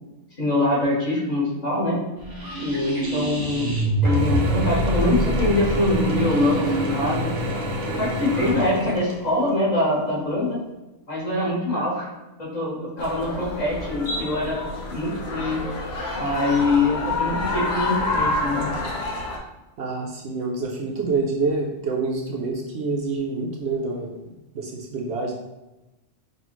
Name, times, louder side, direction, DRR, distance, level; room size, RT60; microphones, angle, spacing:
voice 1, 0.4-2.0 2.6-3.7 4.0-7.3 8.0-10.6 11.1-12.1 12.4-15.6 16.1-18.7, left 2 dB, 35° left, -8 dB, 1.5 m, -24 dB
sound 1, 2.2-8.9, right 1 dB, 35° right, 0.4 m, -26 dB
Mechanisms / Drill, 4.0-9.5, equal, 80° right, 1.2 m, -29 dB
sound 2, 13.0-19.4, left 2 dB, 60° left, 0.9 m, -28 dB
voice 2, 19.8-24.1 24.5-25.3, right 3 dB, 65° right, -1 dB, 0.8 m, -27 dB
5.3 x 2.4 x 3.0 m, 1.0 s
omnidirectional pair, 1.3 m